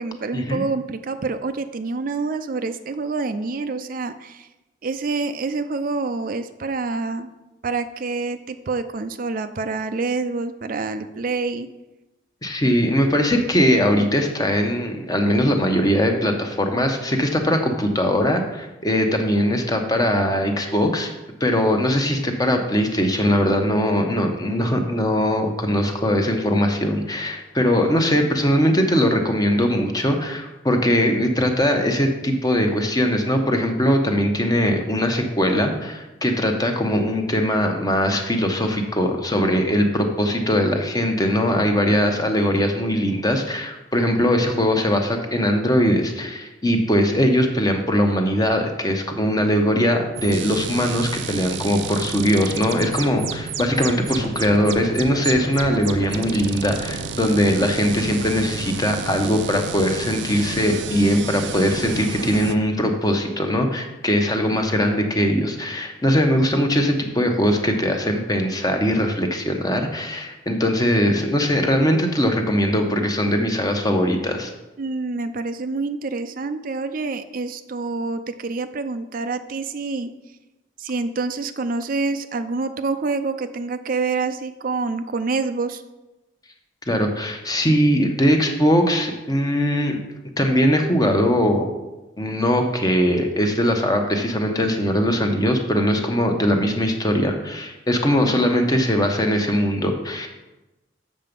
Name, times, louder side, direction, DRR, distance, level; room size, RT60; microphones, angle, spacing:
voice 1, 0.0-4.5 4.8-7.3 7.6-11.7 74.8-80.1 80.8-85.8, right 3 dB, 50° right, 9 dB, 0.4 m, -27 dB
voice 2, 12.4-21.1 21.4-74.5 86.9-90.0 90.4-91.7 92.2-100.3, equal, 20° left, 4 dB, 1.0 m, -20 dB
sound 1, 50.1-62.5, right 5 dB, 90° right, 0.6 m, -31 dB
7.5 x 6.8 x 5.2 m, 1.0 s
head